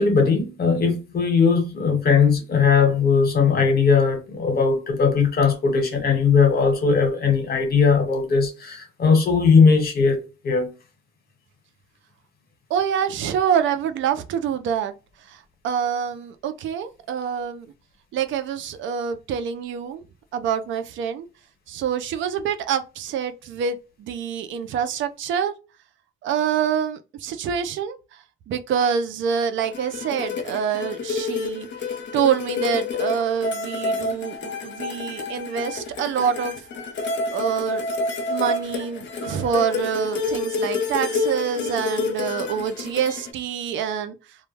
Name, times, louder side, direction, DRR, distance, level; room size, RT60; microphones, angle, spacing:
voice 1, 0.0-10.7, left 5 dB, 50° left, 1.1 m, -19 dB
voice 2, 12.7-14.9 15.3-17.7 18.1-20.0 20.3-21.3 21.7-25.5 26.2-31.7 32.1-36.6 37.3-37.8 38.3-44.2, right 8 dB, 75° right, 0.4 m, -26 dB
sound 1, 29.6-43.3, left 3 dB, 65° left, 0.7 m, -29 dB
2.2 x 2.1 x 3.1 m
cardioid pair, 90°, 20 cm